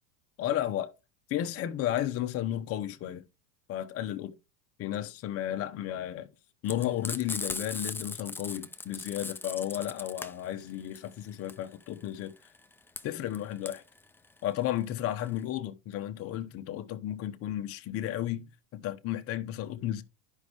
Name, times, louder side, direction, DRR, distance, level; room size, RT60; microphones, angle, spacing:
voice 1, 0.4-0.9 1.3-3.2 3.7-4.4 4.8-6.3 6.6-12.3 13.0-13.8 14.4-20.0, left 12 dB, 35° left, 0.8 m, -33 dB
Frying (food), 6.6-15.4, left 3 dB, 5° left, 0.4 m, -39 dB
11.0 x 5.4 x 3.3 m
supercardioid pair, 120°, 40 cm